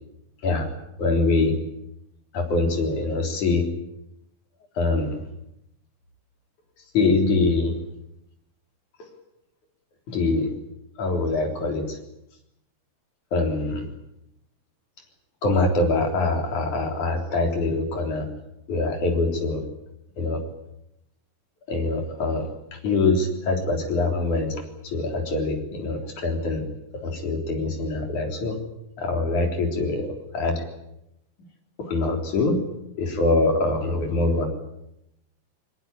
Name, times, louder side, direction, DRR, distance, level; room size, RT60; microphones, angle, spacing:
voice 1, 1.0-1.6 2.3-3.7 4.7-5.2 6.9-7.7 10.1-10.5 11.0-12.0 13.3-13.9 15.4-18.3 18.7-19.6 20.2-20.4 21.7-26.6 26.9-28.6 29.0-30.6 31.8-32.6 33.0-34.5, left 3 dB, 60° left, 3 dB, 5.1 m, -24 dB
22.0 x 19.5 x 9.8 m, 0.84 s
omnidirectional pair, 4.0 m